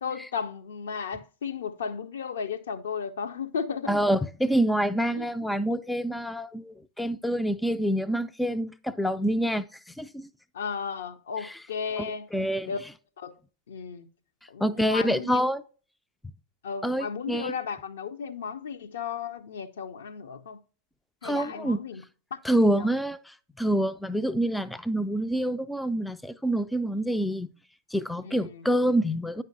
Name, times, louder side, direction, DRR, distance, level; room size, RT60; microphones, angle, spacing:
voice 1, 0.0-3.9 5.1-5.3 10.5-12.3 12.7-12.8 13.2-13.3 13.7-14.1 14.5-15.3 16.6-20.6 21.2-22.0 22.3-22.9 28.2-28.7, left 6 dB, 65° left, 0.5 m, -34 dB
voice 2, 3.9-10.3 12.0-12.1 12.3-12.7 14.6-15.6 16.8-17.5 21.2-21.8 22.4-27.5 27.9-29.4, right 1 dB, 5° left, 0.3 m, -27 dB
9.3 x 5.4 x 2.6 m
figure-of-eight pair, 90°, 0 cm